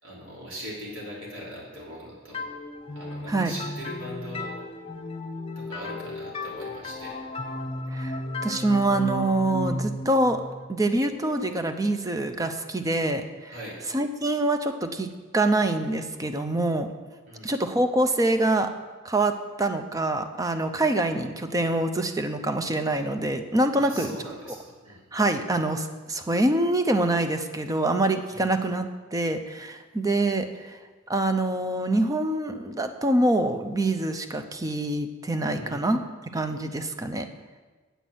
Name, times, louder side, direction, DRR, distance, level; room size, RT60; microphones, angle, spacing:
voice 1, 0.0-2.5 2.9-4.5 5.5-7.2 13.5-13.8 17.3-17.5 23.7-25.0 28.3-28.5 35.5-35.8, equal, 85° right, -5 dB, 3.3 m, -40 dB
sound 1, 2.3-11.9, left 2 dB, 30° left, 0.7 m, -35 dB
voice 2, 7.9-10.4 10.7-13.6 13.9-16.9 17.4-18.7 19.0-24.1 25.1-30.8 31.1-36.0 36.3-37.3, right 2 dB, 15° right, 7 dB, 0.5 m, -25 dB
8.2 x 5.9 x 7.8 m, 1.3 s
head